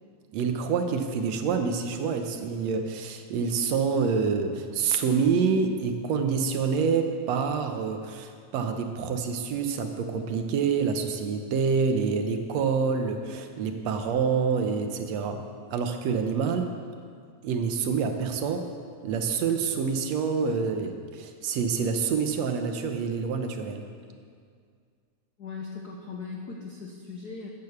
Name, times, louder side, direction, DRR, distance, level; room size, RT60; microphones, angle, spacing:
voice 1, 0.3-15.5 15.7-16.7 17.4-18.7 19.0-23.9, right 5 dB, 70° right, 6 dB, 2.0 m, -27 dB
voice 2, 25.4-27.5, left 4 dB, 80° left, 0 dB, 0.8 m, -39 dB
13.0 x 8.5 x 7.0 m, 2.1 s
omnidirectional pair, 3.3 m